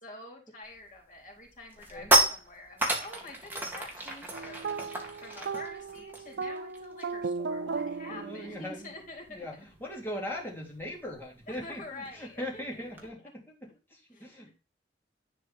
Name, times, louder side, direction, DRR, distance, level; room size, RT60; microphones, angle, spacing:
voice 1, 0.0-9.5 11.5-12.9 14.1-14.5, left 2 dB, 50° left, 0 dB, 3.9 m, -47 dB
sound 1, 0.7-1.0 1.4-7.3 7.6-7.8 8.1-13.1, right 2 dB, 10° right, 2.2 m, -32 dB
sound 2, 4.3-8.9, right 4 dB, 85° right, 0.5 m, -36 dB
voice 2, 8.1-8.9 9.3-14.5, left 1 dB, 15° left, -2 dB, 3.2 m, -40 dB
11.0 x 4.7 x 4.4 m, 0.32 s
head